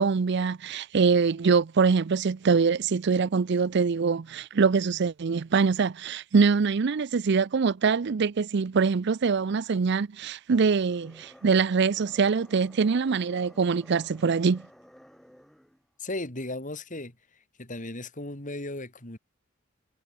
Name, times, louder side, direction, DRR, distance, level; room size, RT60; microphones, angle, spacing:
voice 1, 0.0-14.6, right 5 dB, 60° right, 0.5 m, -24 dB
sound 1, 10.5-15.9, equal, ahead, 3.9 m, -54 dB
voice 2, 16.0-17.2 17.6-19.2, left 2 dB, 40° left, 4.1 m, -36 dB
head